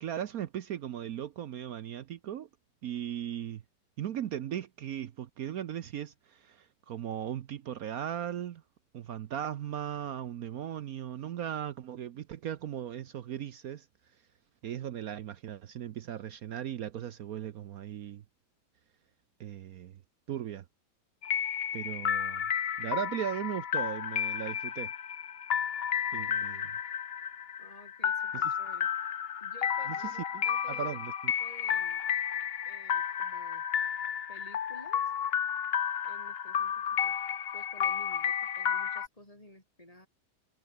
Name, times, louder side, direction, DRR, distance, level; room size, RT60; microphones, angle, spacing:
voice 1, 0.0-2.5 2.8-3.6 4.0-8.6 8.9-13.9 14.6-18.2 19.4-20.0 20.3-20.6 21.7-22.4 22.8-24.9 26.1-26.7 28.3-28.4 29.9-30.4 30.7-31.3, right 10 dB, 65° right, 1.2 m, -37 dB
sound 1, 21.2-39.1, left 8 dB, 45° left, 0.9 m, -32 dB
voice 2, 27.6-28.9 29.4-31.0 31.4-32.0 32.7-33.6 34.3-35.0 36.0-37.2 37.5-40.1, left 1 dB, 20° left, 6.0 m, -54 dB
omnidirectional pair, 1.7 m